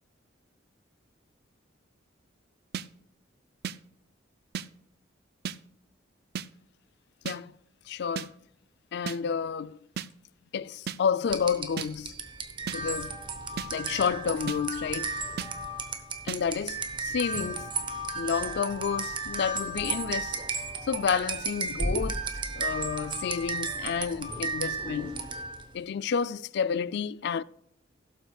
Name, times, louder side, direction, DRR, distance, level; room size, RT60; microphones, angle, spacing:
sound 1, 2.7-2.9 3.6-3.8 4.5-4.7 5.4-5.6 6.3-6.5 7.3-7.4 8.2-8.3 9.1-9.2 10.0-10.1 10.9-11.0 11.8-11.9 12.7-12.8 13.6-13.7 14.5-14.6 15.4-15.5 16.3-16.4, right 7 dB, 55° right, 0.4 m, -34 dB
voice 1, 7.9-8.3 8.9-9.8 10.5-12.2 12.7-13.2 13.7-15.2 16.3-17.7 18.1-20.4 20.8-25.3 25.7-27.4, left 6 dB, 60° left, 0.4 m, -30 dB
sound 2, 11.3-25.7, right 3 dB, 25° right, 1.0 m, -34 dB
17.0 x 7.9 x 2.3 m
head